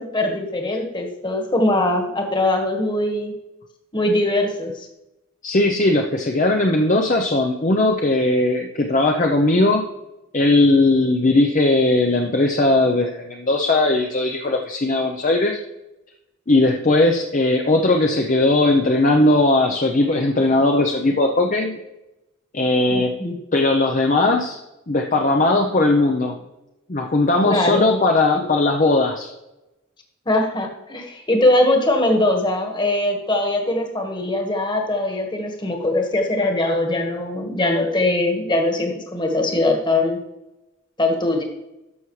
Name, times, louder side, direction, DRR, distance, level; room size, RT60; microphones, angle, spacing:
voice 1, 0.0-3.3 3.9-4.9 22.9-23.3 27.4-27.9 30.2-40.2 41.0-41.4, left 1 dB, 20° left, 2 dB, 1.5 m, -21 dB
voice 2, 5.4-9.8 10.3-15.6 16.5-21.7 22.5-23.1 23.5-24.6 24.9-26.4 26.9-29.3, left 2 dB, 40° left, 2 dB, 0.7 m, -18 dB
12.5 x 6.2 x 3.2 m, 0.96 s
head